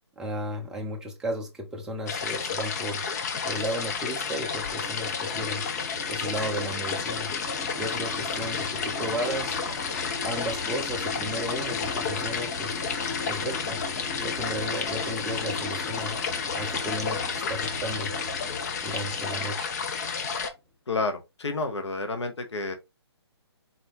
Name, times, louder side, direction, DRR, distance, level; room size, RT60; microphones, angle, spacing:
voice 1, 0.2-3.0 3.4-5.7 6.1-7.3 7.7-9.6 10.2-12.8 13.3-13.8 14.2-16.2 16.5-18.1 18.8-19.7, equal, 5° right, 0.7 m, -34 dB
sound 1, 2.1-20.5, left 6 dB, 40° left, 0.7 m, -31 dB
sound 2, 4.0-20.4, left 2 dB, 20° left, 1.7 m, -39 dB
voice 2, 20.9-22.7, left 3 dB, 80° left, 1.1 m, -30 dB
4.2 x 3.6 x 2.9 m
hypercardioid pair, 150°, 14 cm